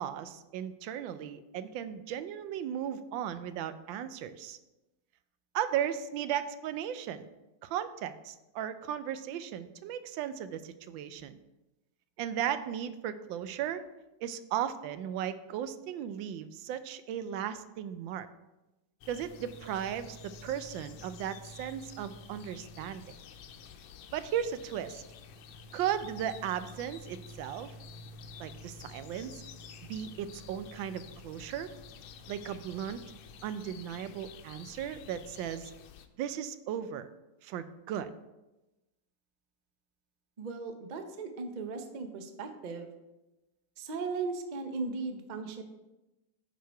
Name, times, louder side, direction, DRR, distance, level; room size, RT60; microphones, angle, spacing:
voice 1, 0.0-4.6 5.5-7.3 7.6-11.4 12.2-13.8 14.2-18.3 19.1-23.2 24.1-25.0 25.7-27.7 28.4-29.4 29.9-31.7 32.3-33.0 33.4-35.7 36.2-37.1 37.4-38.1, right 10 dB, 85° right, 12 dB, 1.3 m, -36 dB
sound 1, 19.0-36.1, left 4 dB, 90° left, 1.4 m, -49 dB
voice 2, 40.4-42.9 43.8-45.6, right 4 dB, 70° right, 6 dB, 0.4 m, -37 dB
9.2 x 4.7 x 4.5 m, 1.0 s
omnidirectional pair, 2.0 m